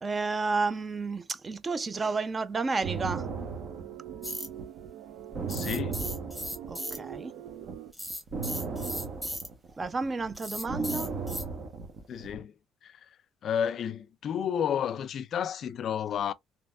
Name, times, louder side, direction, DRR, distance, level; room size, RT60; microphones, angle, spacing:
voice 1, 0.0-3.3 6.7-7.3 9.8-11.1, right 3 dB, 25° right, 0.5 m, -31 dB
sound 1, 2.8-7.2 7.5-12.4, right 5 dB, 55° right, 1.1 m, -36 dB
sound 2, 2.8-7.9, right 11 dB, 80° right, 0.5 m, -43 dB
sound 3, 4.2-4.5 5.5-7.0 7.9-9.5 10.4-11.4, equal, ahead, 1.4 m, -36 dB
voice 2, 5.5-6.0 12.1-12.5 12.8-13.0 13.4-16.3, left 8 dB, 55° left, 0.3 m, -31 dB
3.4 x 2.8 x 2.4 m
cardioid pair, 110°, 0 cm